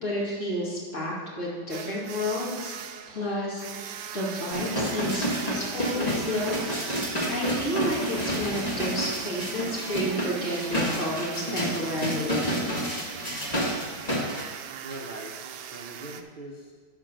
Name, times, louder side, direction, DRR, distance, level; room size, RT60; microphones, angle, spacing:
voice 1, 0.0-2.7 3.1-6.6 7.3-12.5, equal, 45° left, -6 dB, 2.7 m, -31 dB
sound 1, 1.7-16.2, right 9 dB, 80° right, 1.2 m, -39 dB
sound 2, 4.5-14.4 14.9-15.0, equal, 25° left, 1.6 m, -30 dB
voice 2, 14.8-15.4 15.7-16.7, right 1 dB, 40° right, -3 dB, 0.9 m, -42 dB
11.5 x 4.4 x 6.5 m, 1.5 s
omnidirectional pair, 1.8 m